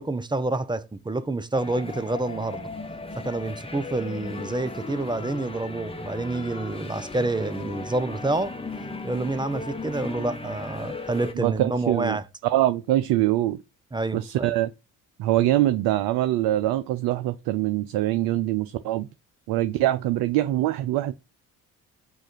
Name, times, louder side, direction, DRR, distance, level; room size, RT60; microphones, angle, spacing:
voice 1, 0.0-2.7 3.2-8.5 9.0-12.2 13.9-14.5, right 2 dB, 10° right, 0.6 m, -28 dB
sound 1, 1.5-11.3, left 3 dB, 15° left, 0.9 m, -36 dB
voice 2, 11.4-12.2 12.5-13.6 14.1-14.7 15.2-19.1 19.5-21.1, right 14 dB, 60° right, 0.5 m, -23 dB
4.7 x 2.5 x 4.4 m
hypercardioid pair, 55°, 42 cm